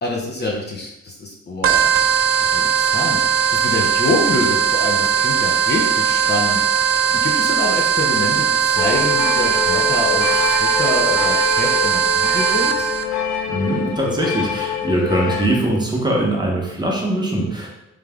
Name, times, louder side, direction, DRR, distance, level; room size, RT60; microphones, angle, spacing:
voice 1, 0.0-1.8 2.4-12.9, left 2 dB, 35° left, -1 dB, 0.7 m, -26 dB
sound 1, 1.6-13.0, right 7 dB, 50° right, 0.4 m, -18 dB
sound 2, 8.8-15.5, left 8 dB, 70° left, 0.6 m, -25 dB
voice 2, 13.5-17.7, right 1 dB, 15° right, -2 dB, 1.0 m, -21 dB
3.4 x 3.2 x 3.5 m, 0.89 s
cardioid pair, 90°, 30 cm